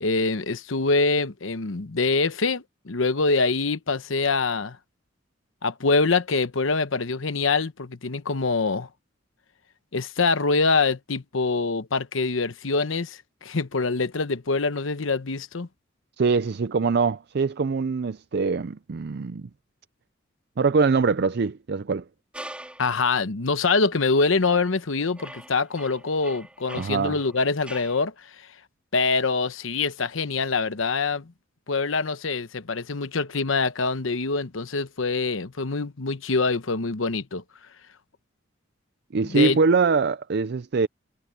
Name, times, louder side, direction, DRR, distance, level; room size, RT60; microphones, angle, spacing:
voice 1, 0.0-4.8 5.6-8.9 9.9-15.7 22.8-28.5 28.9-31.3 31.7-37.4 39.2-39.6, left 4 dB, 85° left, 1.0 m, -25 dB
voice 2, 16.2-19.5 20.6-22.0 26.8-27.2 39.1-40.9, right 4 dB, 55° right, 0.5 m, -23 dB
sound 1, 22.3-22.9 23.7-23.8 24.5-24.8 25.1-28.0, right 1 dB, 5° right, 3.1 m, -43 dB
head